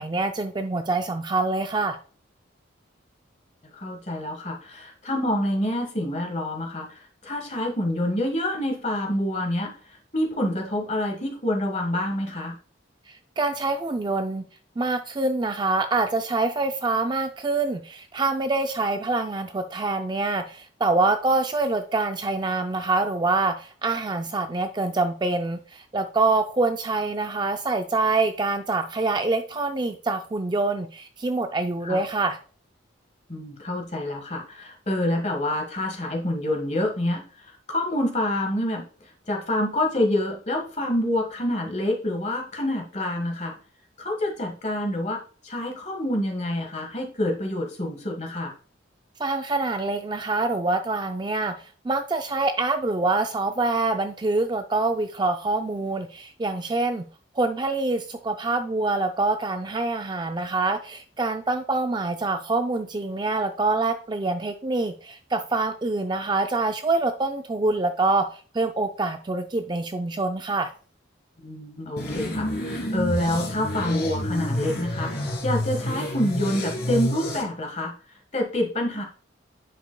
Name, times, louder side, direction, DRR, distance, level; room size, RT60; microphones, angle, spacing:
voice 1, 0.0-2.0 13.1-14.4 14.8-32.4 49.2-57.0 57.4-70.7, right 3 dB, 20° right, 7 dB, 0.3 m, -25 dB
voice 2, 3.7-12.5 31.8-32.0 33.3-38.8 39.3-43.6 44.0-48.5 71.4-77.9 78.3-79.0, left 1 dB, 35° left, 2 dB, 1.4 m, -27 dB
sound 1, 72.0-77.4, left 1 dB, 50° left, 2.0 m, -29 dB
9.2 x 5.2 x 2.2 m, 0.39 s
head